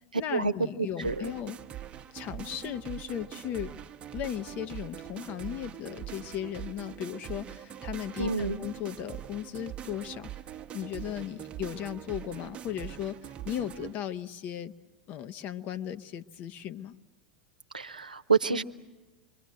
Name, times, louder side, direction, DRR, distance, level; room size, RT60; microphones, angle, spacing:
voice 1, 0.1-1.6 2.1-3.7 4.1-10.3 10.7-13.2 13.4-14.7 15.1-16.9, left 10 dB, 40° left, 11 dB, 0.9 m, -36 dB
sound 1, 1.0-13.9, right 11 dB, 30° right, 0.9 m, -42 dB
voice 2, 1.0-1.3 8.2-8.6 17.7-18.6, right 5 dB, 85° right, 9 dB, 0.8 m, -28 dB
27.0 x 23.5 x 7.6 m, 1.1 s
figure-of-eight pair, 85°, 4 cm